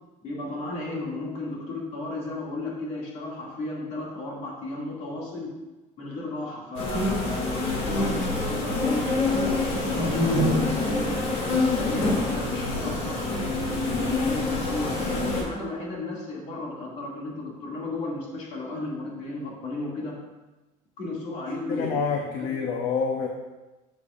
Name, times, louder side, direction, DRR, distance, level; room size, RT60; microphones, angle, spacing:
voice 1, 0.2-5.5 6.0-11.2 11.7-20.2 21.0-22.5, left 2 dB, 45° left, -3 dB, 2.3 m, -34 dB
sound 1, 6.8-15.4, left 2 dB, 90° left, 2.5 m, -26 dB
voice 2, 21.7-23.3, left 5 dB, 65° left, 2 dB, 0.8 m, -27 dB
12.0 x 7.0 x 2.5 m, 1.1 s
cardioid pair, 170°, 16 cm